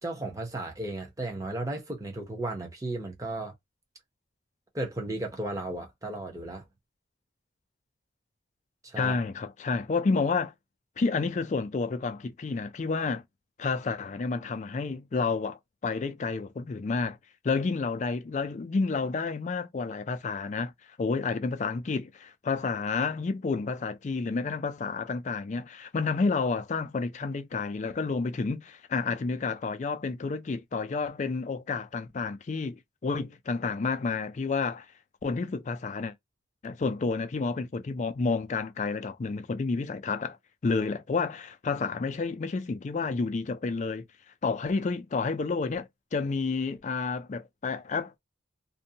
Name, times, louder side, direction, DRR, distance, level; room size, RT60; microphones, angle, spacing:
voice 1, 0.0-3.5 4.7-6.6 8.8-9.2, right 2 dB, 15° right, 0.8 m, -34 dB
voice 2, 9.0-10.5 11.0-13.2 13.6-17.2 17.4-20.7 21.0-34.9 35.2-36.1 36.6-40.4 40.6-44.0 44.4-48.2, left 4 dB, 40° left, 0.3 m, -30 dB
2.6 x 2.2 x 2.7 m
head